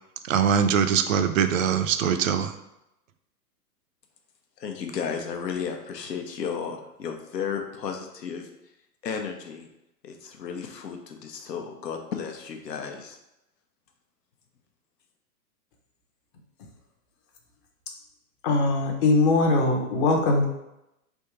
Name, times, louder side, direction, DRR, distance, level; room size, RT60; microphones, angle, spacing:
voice 1, 0.2-2.5, right 7 dB, 55° right, 9 dB, 0.5 m, -22 dB
voice 2, 4.6-8.4 9.0-9.7 10.0-13.2, left 6 dB, 80° left, 4 dB, 0.9 m, -33 dB
voice 3, 18.4-20.4, left 3 dB, 35° left, 2 dB, 0.7 m, -21 dB
3.5 x 2.7 x 4.5 m, 0.88 s
hypercardioid pair, 125°, 48 cm